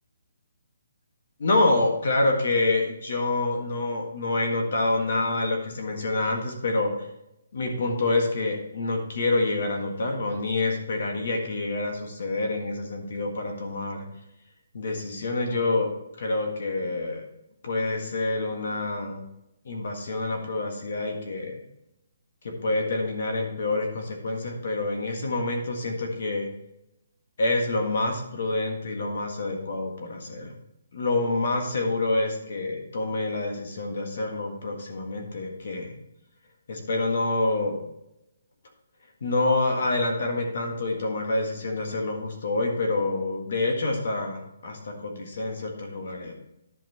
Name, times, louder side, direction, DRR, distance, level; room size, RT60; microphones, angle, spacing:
voice 1, 1.4-7.1 7.5-14.1 14.7-15.9 16.2-17.2 17.6-19.2 19.7-21.6 22.4-26.5 27.4-30.5 30.9-36.0 36.7-37.8 39.2-46.3, left 2 dB, 45° left, 2 dB, 1.7 m, -27 dB
11.0 x 5.9 x 4.3 m, 0.86 s
hypercardioid pair, 180°, 0 cm